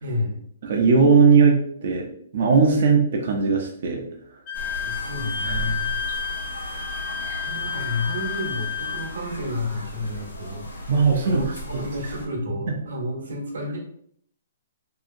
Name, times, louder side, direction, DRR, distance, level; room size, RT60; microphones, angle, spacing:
voice 1, 0.0-0.5 4.8-5.9 7.3-10.9 11.2-13.8, left 1 dB, 75° right, 0 dB, 1.0 m, -31 dB
voice 2, 0.6-2.0 2.3-4.0 5.4-5.7 10.9-11.4 12.7-12.8, right 5 dB, 55° right, 0 dB, 0.6 m, -18 dB
sound 1, 4.5-12.3, equal, 90° left, 0.8 m, -36 dB
Wind instrument woodwind instrument, 4.5-9.1, left 7 dB, 35° left, 0.8 m, -31 dB
2.8 x 2.4 x 2.5 m, 0.65 s
hypercardioid pair, 135°, 0 cm